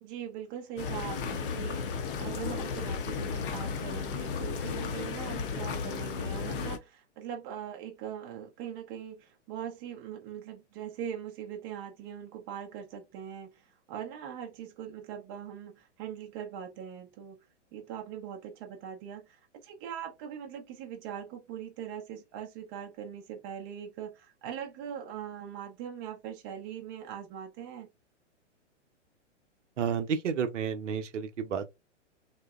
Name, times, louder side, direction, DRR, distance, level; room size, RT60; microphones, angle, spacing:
voice 1, 0.0-13.5 13.9-17.4 17.7-19.3 19.6-27.9, right 9 dB, 20° right, 0.3 m, -41 dB
sound 1, 0.8-6.8, left 5 dB, 45° left, 0.5 m, -34 dB
voice 2, 29.8-31.7, right 7 dB, 80° right, 0.6 m, -31 dB
2.8 x 2.0 x 2.2 m
hypercardioid pair, 120°, 36 cm